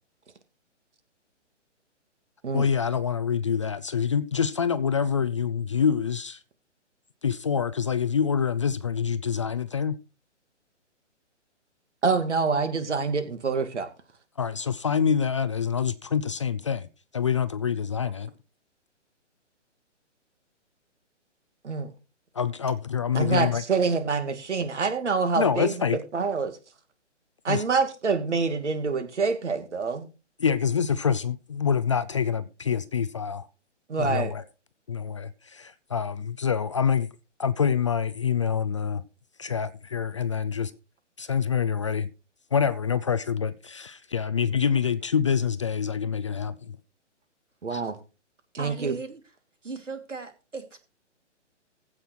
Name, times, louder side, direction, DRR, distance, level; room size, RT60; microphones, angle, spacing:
voice 1, 2.5-6.4 7.2-10.0 14.4-18.3 22.3-23.6 25.3-26.0 27.5-27.6 30.4-33.5 34.0-34.4 34.9-37.1 37.4-39.0 39.4-40.7 41.2-42.1 42.5-46.8 47.7-47.8, left 7 dB, 25° left, 0.4 m, -26 dB
voice 2, 12.0-13.9 21.6-21.9 23.1-25.7 26.1-26.6 27.4-30.1 33.9-34.3 47.6-48.0 48.5-48.9, right 4 dB, 70° right, 2.5 m, -26 dB
voice 3, 48.6-49.2 49.6-50.8, right 4 dB, 90° right, 2.8 m, -38 dB
15.5 x 6.1 x 4.5 m
figure-of-eight pair, 135°, 37 cm